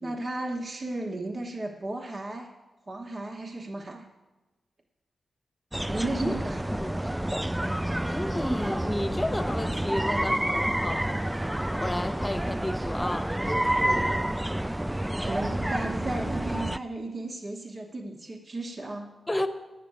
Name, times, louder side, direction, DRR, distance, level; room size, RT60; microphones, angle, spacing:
voice 1, 0.0-2.5 2.9-4.0 5.8-6.7 15.2-19.1, right 2 dB, 45° right, 0 dB, 1.2 m, -34 dB
sound 1, 5.7-16.8, right 1 dB, 10° right, 0.3 m, -29 dB
voice 2, 8.1-11.1 11.8-13.4 19.3-19.5, left 1 dB, 20° left, 9 dB, 1.1 m, -32 dB
9.7 x 7.6 x 8.8 m, 1.1 s
cardioid pair, 60°, 0 cm